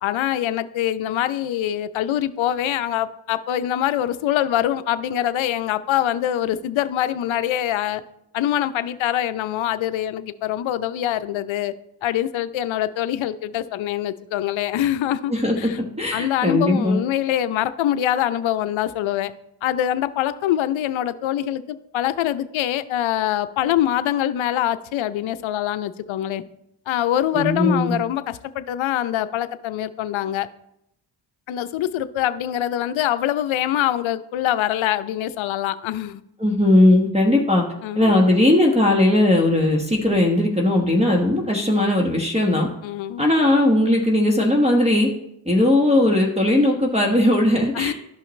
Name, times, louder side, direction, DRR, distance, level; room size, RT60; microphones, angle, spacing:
voice 1, 0.0-8.0 8.3-11.7 12.0-15.8 16.1-19.3 19.6-26.4 26.9-30.5 31.5-36.2 37.8-38.3 42.8-43.3 47.7-47.9, left 12 dB, 70° left, 13 dB, 0.6 m, -24 dB
voice 2, 16.0-17.0 27.3-27.9 36.4-37.6 37.9-42.7 43.2-45.1 45.4-47.9, left 1 dB, 15° right, 1 dB, 1.2 m, -18 dB
12.5 x 5.6 x 3.1 m, 0.80 s
cardioid pair, 75°, 48 cm